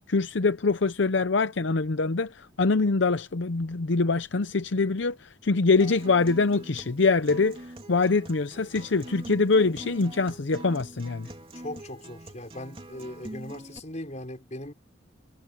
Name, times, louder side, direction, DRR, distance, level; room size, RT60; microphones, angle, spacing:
voice 1, 0.1-7.6 7.9-11.3, left 4 dB, 65° left, 0.7 m, -24 dB
Acoustic guitar, 5.8-13.8, right 1 dB, 25° right, 3.0 m, -43 dB
voice 2, 11.5-14.7, left 1 dB, 35° left, 5.9 m, -39 dB
head